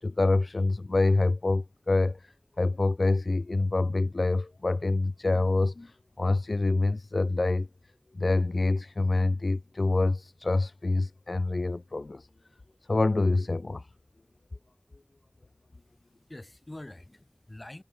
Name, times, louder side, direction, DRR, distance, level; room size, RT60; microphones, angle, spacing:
voice 1, 0.0-7.7 8.1-12.3 12.9-13.9, left 2 dB, 75° left, 0.4 m, -26 dB
voice 2, 15.7-17.8, left 1 dB, 35° left, 2.3 m, -46 dB
wide cardioid pair, 45°, 0 cm